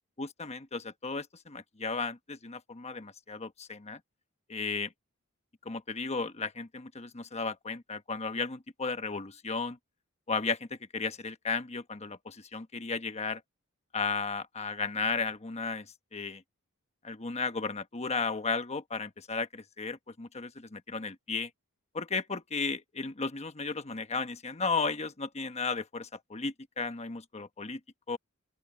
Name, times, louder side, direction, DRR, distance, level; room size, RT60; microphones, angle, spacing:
voice 1, 0.2-4.0 4.5-4.9 5.6-9.8 10.3-13.4 13.9-16.4 17.0-21.5 21.9-27.8 28.1-28.2, left 4 dB, 30° left, 1.1 m, -34 dB
open air
head